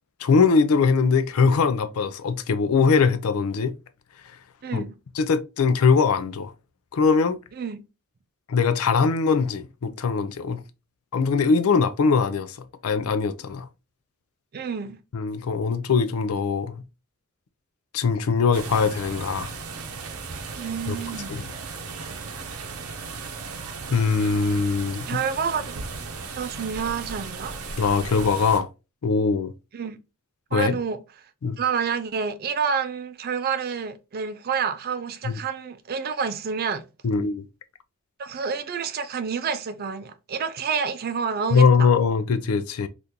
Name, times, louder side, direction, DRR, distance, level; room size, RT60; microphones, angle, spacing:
voice 1, 0.2-3.7 4.7-4.8 5.2-6.5 6.9-7.4 8.5-10.6 11.1-12.6 12.8-13.7 15.1-16.8 17.9-19.5 20.9-21.0 21.3-21.5 23.9-25.1 27.8-28.7 29.0-29.5 30.5-30.8 31.4-31.6 35.2-35.4 37.0-37.4 41.5-42.9, left 5 dB, 80° left, 0.4 m, -21 dB
voice 2, 4.6-4.9 7.6-7.8 14.5-15.0 20.5-21.3 25.1-25.8 26.4-27.5 29.7-30.0 30.5-31.0 31.6-36.9 38.2-41.9, right 6 dB, 45° right, 0.4 m, -28 dB
sound 1, 18.5-28.6, right 4 dB, 85° right, 0.7 m, -36 dB
3.6 x 2.5 x 2.7 m
head